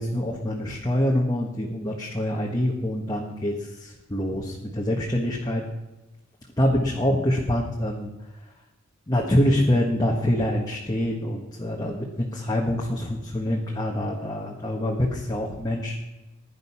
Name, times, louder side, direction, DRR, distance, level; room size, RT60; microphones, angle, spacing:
voice 1, 0.0-5.6 6.6-8.1 9.1-16.0, left 1 dB, 20° left, -1 dB, 1.6 m, -25 dB
16.0 x 10.5 x 5.8 m, 1.0 s
head